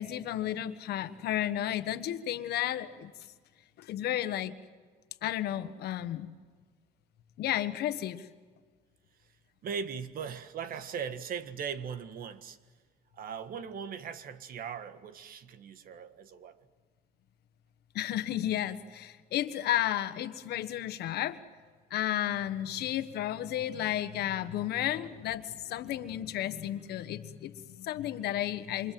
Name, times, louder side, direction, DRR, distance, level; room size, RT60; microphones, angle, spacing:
voice 1, 0.0-3.1 3.8-4.6 5.2-6.3 7.4-8.3 17.9-21.4 21.9-28.9, left 12 dB, 70° left, 1.5 m, -32 dB
voice 2, 9.6-12.6 13.1-16.6, right 6 dB, 60° right, 1.7 m, -39 dB
29.0 x 26.5 x 7.7 m
cardioid pair, 110°, 17 cm